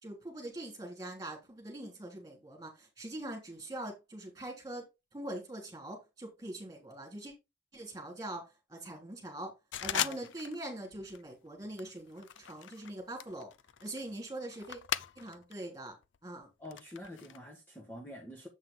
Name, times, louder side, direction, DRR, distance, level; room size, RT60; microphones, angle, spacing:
voice 1, 0.0-4.8 5.1-7.3 7.7-9.5 9.8-13.5 13.8-14.8 15.2-15.9 16.2-16.5, right 1 dB, 15° right, 3.2 m, -43 dB
sound 1, 9.7-10.6 10.9-11.3 11.8-15.5 15.9-17.4, left 10 dB, 65° left, 0.5 m, -39 dB
voice 2, 9.9-10.3 16.6-18.5, left 1 dB, 10° left, 1.5 m, -47 dB
8.0 x 5.6 x 3.7 m
head